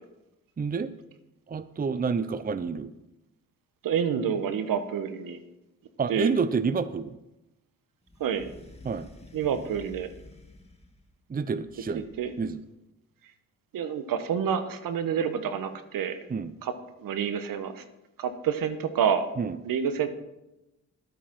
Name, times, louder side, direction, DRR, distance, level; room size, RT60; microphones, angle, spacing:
voice 1, 0.6-0.9 1.5-2.9 6.0-7.2 8.8-9.1 11.3-12.0 12.4-12.6 16.3-16.5 19.4-19.6, right 5 dB, 25° right, 14 dB, 0.6 m, -28 dB
voice 2, 3.8-5.4 6.1-6.3 8.2-8.5 9.3-10.1 11.9-12.3 13.7-16.2 16.6-16.7 17.0-17.8 18.2-19.3 19.6-20.1, right 7 dB, 75° right, 10 dB, 1.1 m, -28 dB
sound 1, 8.1-11.1 11.6-12.5, left 2 dB, 15° left, 1.9 m, -50 dB
12.0 x 8.5 x 4.6 m, 0.95 s
supercardioid pair, 50°, 35 cm